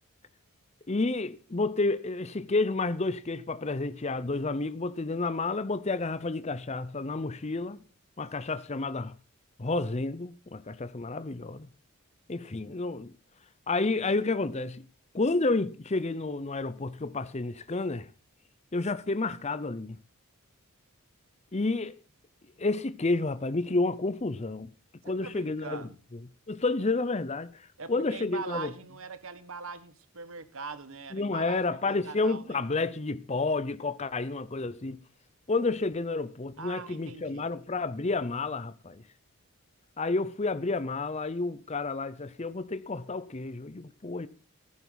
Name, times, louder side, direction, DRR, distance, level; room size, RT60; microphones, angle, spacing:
voice 1, 0.9-7.8 8.2-9.1 9.6-11.7 12.3-13.1 13.7-14.8 15.1-18.1 18.7-20.0 21.5-22.0 22.6-24.7 25.0-25.8 26.1-26.2 26.5-28.7 31.1-35.0 35.5-39.0 40.0-44.3, left 3 dB, 30° left, 0.6 m, -30 dB
voice 2, 25.0-26.0 27.8-32.6 36.6-37.5, right 4 dB, 65° right, 1.5 m, -42 dB
15.0 x 11.0 x 4.0 m
head